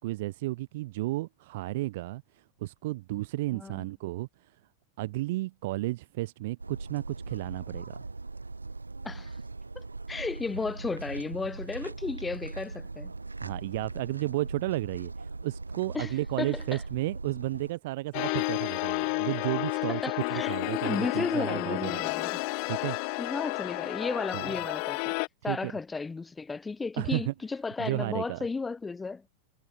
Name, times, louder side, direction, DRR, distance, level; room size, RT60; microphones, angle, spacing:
voice 1, 0.0-4.5 5.0-8.0 13.4-20.0 20.3-22.0 22.6-23.0 24.3-24.4 25.5-25.7 27.0-27.3 27.8-28.4, right 18 dB, 50° right, 6.7 m, -33 dB
voice 2, 3.5-3.9 9.0-9.4 9.8-13.1 15.9-16.8 19.9-22.4 23.2-25.2 25.4-29.2, left 4 dB, 10° left, 7.2 m, -34 dB
sound 1, 6.6-17.7, right 3 dB, 80° right, 6.8 m, -40 dB
sound 2, 18.1-25.3, left 40 dB or more, 45° left, 2.2 m, -31 dB
figure-of-eight pair, 90°, 0 cm